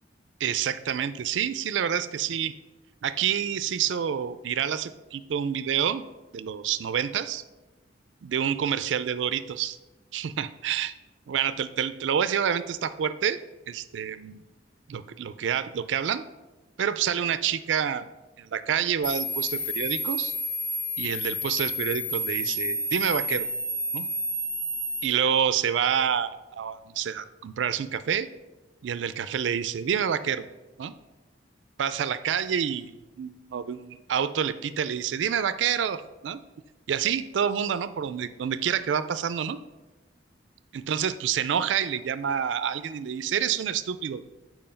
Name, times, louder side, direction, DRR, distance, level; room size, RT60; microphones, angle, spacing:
voice 1, 0.4-2.5 3.0-6.0 6.3-7.4 8.2-9.8 10.1-10.9 11.3-13.4 13.7-14.4 14.9-16.2 16.8-18.1 18.4-20.3 21.0-23.5 23.9-24.1 25.0-28.3 28.8-30.5 30.8-30.9 31.8-36.4 36.9-39.6 40.7-44.2, right 8 dB, 80° right, 13 dB, 0.4 m, -28 dB
sound 1, 19.0-25.0, left 1 dB, 5° left, 0.6 m, -30 dB
7.6 x 4.6 x 5.6 m, 1.1 s
head